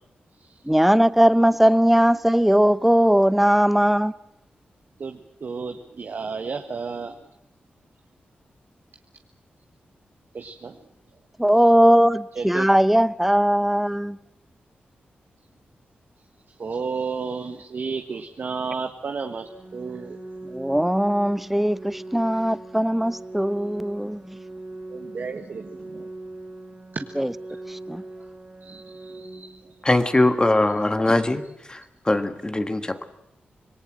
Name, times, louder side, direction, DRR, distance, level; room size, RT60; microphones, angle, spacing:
voice 1, 0.7-4.1 11.4-14.2 20.5-24.4 27.2-27.3 27.7-28.0, equal, 5° right, 0.8 m, -19 dB
voice 2, 5.0-7.2 10.3-10.8 12.3-12.7 16.6-20.2 24.9-26.1 28.6-29.6, right 5 dB, 60° right, 1.4 m, -32 dB
Organ, 19.3-30.3, right 2 dB, 35° right, 3.8 m, -41 dB
voice 3, 29.8-31.4 31.7-33.0, left 2 dB, 20° left, 1.8 m, -21 dB
26.0 x 19.5 x 7.6 m
cardioid pair, 60°, 4 cm